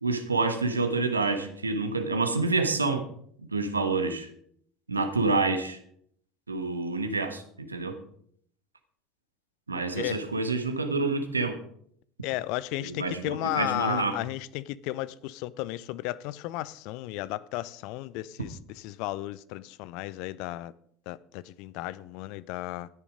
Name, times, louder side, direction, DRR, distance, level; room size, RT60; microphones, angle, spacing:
voice 1, 0.0-3.1 3.5-4.3 4.9-5.8 6.5-8.0 9.7-11.6 12.8-14.2, right 3 dB, 85° right, 1.3 m, -28 dB
voice 2, 12.2-20.7 21.1-22.9, left 16 dB, 55° left, 0.5 m, -34 dB
13.0 x 10.0 x 5.1 m
figure-of-eight pair, 70°, 0 cm